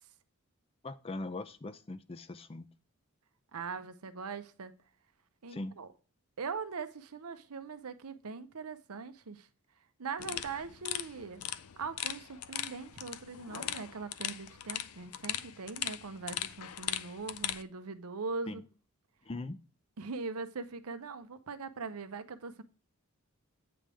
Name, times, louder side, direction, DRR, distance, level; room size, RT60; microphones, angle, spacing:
voice 1, 0.8-2.7 5.5-5.8 18.5-18.6 19.2-19.6, left 2 dB, 25° left, 0.4 m, -40 dB
voice 2, 3.5-4.7 5.4-5.9 6.4-9.5 10.0-11.4 11.8-18.6 20.0-22.6, right 4 dB, 85° right, 0.7 m, -41 dB
sound 1, 10.2-17.6, left 11 dB, 80° left, 0.5 m, -39 dB
8.7 x 3.4 x 6.2 m
head